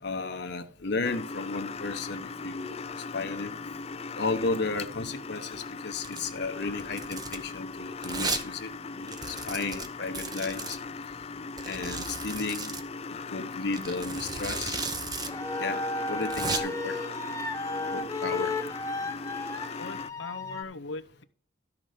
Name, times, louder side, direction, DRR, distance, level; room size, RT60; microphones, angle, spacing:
voice 1, 0.0-2.8 3.1-3.6 4.2-8.7 9.0-10.8 11.6-12.7 13.3-14.8 15.6-15.8 16.0-17.0 17.9-18.6 20.5-20.6, left 3 dB, 60° left, 1.1 m, -33 dB
sound 1, 1.0-20.1, left 4 dB, 30° left, 0.4 m, -39 dB
Domestic sounds home sounds, 6.0-6.3 6.8-7.4 8.0-8.4 8.7-8.8 9.1-10.8 11.6-12.8 13.7-15.3 15.6-15.7 16.1-16.6, right 4 dB, 20° right, 1.0 m, -35 dB
sound 2, 15.2-20.6, left 2 dB, 15° left, 0.9 m, -34 dB
voice 2, 19.8-21.2, left 3 dB, 90° left, 0.8 m, -40 dB
12.5 x 6.0 x 5.0 m
head